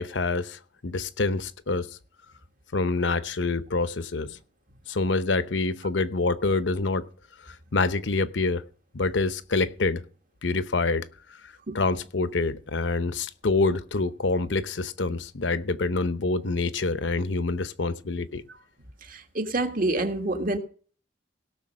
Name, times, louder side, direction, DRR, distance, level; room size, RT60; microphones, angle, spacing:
voice 1, 0.0-1.9 2.7-4.4 4.9-7.1 7.4-8.6 8.9-10.0 10.4-11.1 11.4-18.4, left 3 dB, 75° left, 0.8 m, -26 dB
voice 2, 19.0-20.6, right 2 dB, 50° right, 1.6 m, -27 dB
17.0 x 6.4 x 6.2 m
head